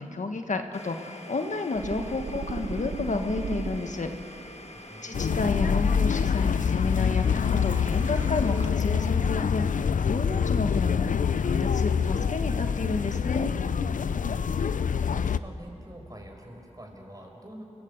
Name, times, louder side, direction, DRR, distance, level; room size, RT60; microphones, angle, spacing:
voice 1, 0.0-4.1 5.0-13.6, left 3 dB, 75° left, 5 dB, 1.6 m, -31 dB
Domestic sounds home sounds, 0.7-12.4, left 1 dB, 55° left, 1.8 m, -47 dB
sound 1, 1.8-4.2 5.2-6.1, right 4 dB, 85° right, 1.0 m, -36 dB
voice 2, 4.7-5.2 14.2-17.6, equal, 30° right, 2 dB, 5.0 m, -46 dB
sound 2, 5.1-15.4, left 6 dB, 90° left, 0.5 m, -25 dB
30.0 x 18.5 x 8.3 m, 2.9 s
wide cardioid pair, 75°, 13 cm